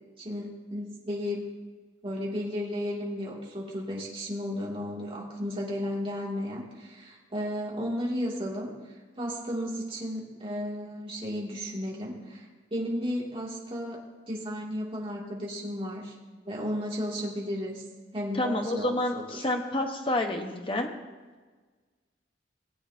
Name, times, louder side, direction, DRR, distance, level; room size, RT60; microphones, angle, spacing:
voice 1, 0.2-1.4 2.0-8.7 9.2-12.5 12.7-14.0 14.3-16.1 16.5-17.8 18.1-19.2, equal, 30° right, -4 dB, 2.5 m, -34 dB
voice 2, 18.3-20.9, left 1 dB, 30° left, 3 dB, 1.1 m, -29 dB
20.5 x 8.3 x 2.8 m, 1.4 s
head